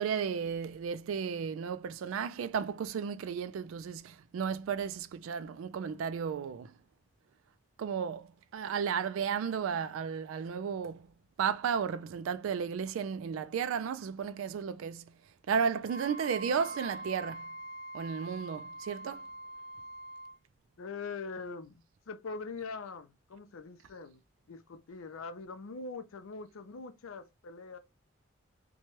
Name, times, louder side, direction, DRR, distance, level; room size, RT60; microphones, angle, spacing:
voice 1, 0.0-6.7 7.8-11.1 11.4-15.1 15.5-17.5 17.9-19.3, right 7 dB, 85° right, 0.3 m, -34 dB
Wind instrument woodwind instrument, 15.9-20.4, right 1 dB, 40° left, 0.4 m, -44 dB
voice 2, 20.8-24.2 24.5-27.8, left 4 dB, 90° left, 0.5 m, -43 dB
2.9 x 2.2 x 3.0 m
head